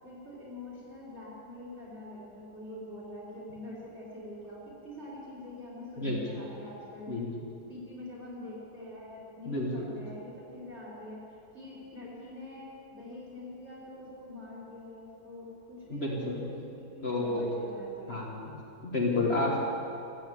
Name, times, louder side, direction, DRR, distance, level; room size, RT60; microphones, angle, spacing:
voice 1, 0.0-7.1 7.7-11.2 11.5-18.2, left 1 dB, 40° right, -7 dB, 4.6 m, -45 dB
voice 2, 9.5-9.9 15.9-16.4 17.0-17.5 18.1-18.5 18.8-19.6, left 2 dB, 40° left, -3 dB, 1.8 m, -30 dB
14.5 x 9.1 x 7.7 m, 2.7 s
omnidirectional pair, 1.7 m